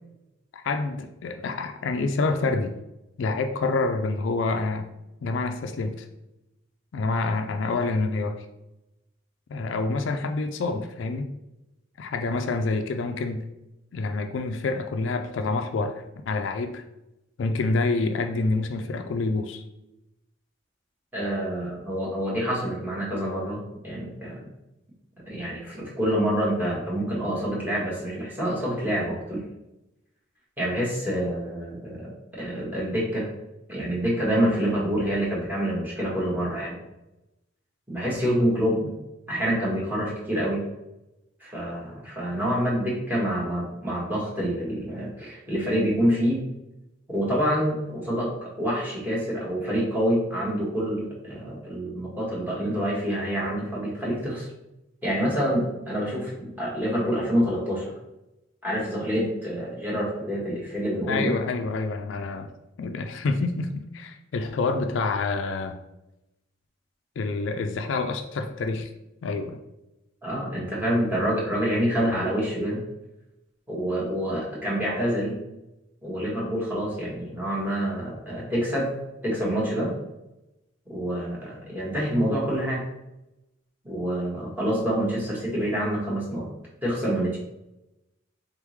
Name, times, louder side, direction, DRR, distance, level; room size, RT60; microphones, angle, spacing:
voice 1, 0.5-2.7 3.2-4.9 5.2-6.1 6.9-8.4 9.5-11.3 12.0-13.4 13.9-16.8 17.4-19.6 61.1-62.5 62.8-65.8 67.2-68.9 69.2-69.6, left 3 dB, 70° left, 6 dB, 0.4 m, -27 dB
voice 2, 21.1-24.5 25.3-29.4 30.6-33.3 33.7-36.8 37.9-38.9 39.3-40.6 41.4-46.4 47.1-54.5 55.0-57.8 58.6-61.3 70.2-72.8 73.7-75.4 76.0-78.9 79.2-79.9 80.9-82.8 83.8-86.5 86.8-87.4, equal, 10° right, -5 dB, 1.4 m, -27 dB
3.9 x 3.5 x 3.1 m, 0.92 s
head